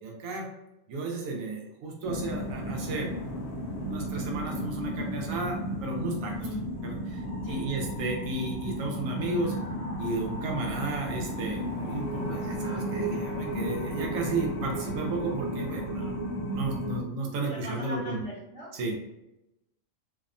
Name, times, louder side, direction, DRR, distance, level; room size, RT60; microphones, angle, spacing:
voice 1, 0.0-0.5 0.9-3.2 3.7-6.3 6.8-9.5 10.0-18.2 18.7-18.9, right 2 dB, 85° right, 0 dB, 1.0 m, -33 dB
sound 1, 2.0-17.0, equal, 65° left, 0.5 m, -33 dB
voice 2, 6.3-6.7 7.4-7.6 17.4-18.7, right 1 dB, 60° right, -7 dB, 0.3 m, -39 dB
2.7 x 2.1 x 2.4 m, 0.90 s
omnidirectional pair, 1.4 m